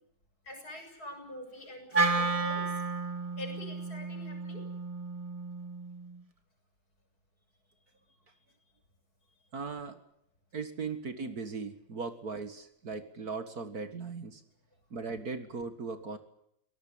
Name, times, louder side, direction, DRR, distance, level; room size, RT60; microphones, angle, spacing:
voice 1, 0.4-2.8 3.4-4.6, left 1 dB, 55° left, 5 dB, 7.3 m, -45 dB
Wind instrument woodwind instrument, 1.9-6.2, right 3 dB, 20° right, 1.6 m, -32 dB
voice 2, 9.5-10.0 10.5-14.4 14.9-16.2, right 4 dB, 55° right, 10 dB, 2.2 m, -38 dB
24.5 x 18.0 x 8.5 m, 0.72 s
omnidirectional pair, 2.0 m